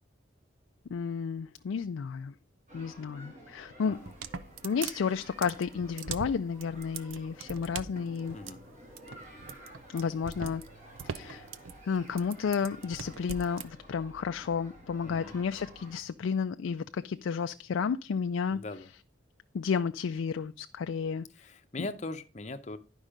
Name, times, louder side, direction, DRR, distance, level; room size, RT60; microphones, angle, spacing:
voice 1, 0.9-2.3 2.7-4.0 4.6-8.4 9.9-10.6 11.1-11.5 11.8-18.6 19.5-21.3 21.8-21.9, left 6 dB, 80° left, 0.4 m, -32 dB
sound 1, 2.7-16.0, equal, 40° right, 2.6 m, -52 dB
sound 2, 3.9-13.7, right 6 dB, 85° right, 0.6 m, -41 dB
voice 2, 15.0-15.3 18.5-18.9 21.4-22.8, left 2 dB, 35° left, 0.7 m, -40 dB
10.5 x 5.4 x 4.9 m
head